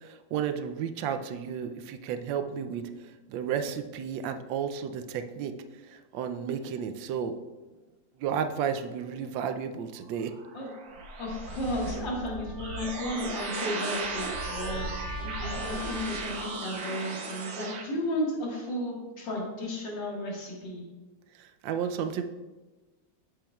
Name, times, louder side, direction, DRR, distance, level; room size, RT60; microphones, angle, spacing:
voice 1, 0.3-2.8 3.3-5.5 6.1-7.3 8.2-10.3 21.6-22.2, right 8 dB, 85° right, 9 dB, 1.3 m, -32 dB
sound 1, 10.1-17.8, right 3 dB, 60° right, 1.3 m, -36 dB
voice 2, 11.2-14.9 15.2-20.8, left 1 dB, 80° left, -3 dB, 2.4 m, -33 dB
Trumpet, 12.0-16.8, right 1 dB, 20° right, 0.6 m, -42 dB
8.6 x 7.2 x 2.3 m, 1.2 s
omnidirectional pair, 2.0 m